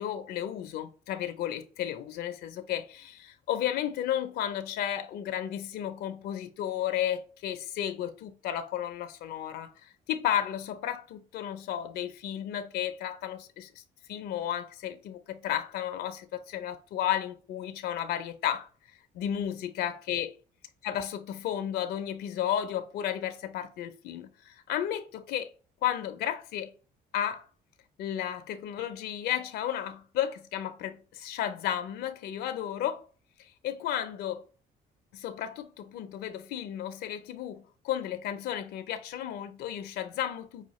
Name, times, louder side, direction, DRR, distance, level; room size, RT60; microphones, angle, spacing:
voice 1, 0.0-13.8 14.1-18.7 19.1-20.3 20.8-25.5 25.8-26.7 27.1-27.5 28.0-33.0 33.4-34.4 35.1-40.7, left 10 dB, 75° left, 0.5 m, -33 dB
5.6 x 2.2 x 3.0 m
cardioid pair, 110°, 17 cm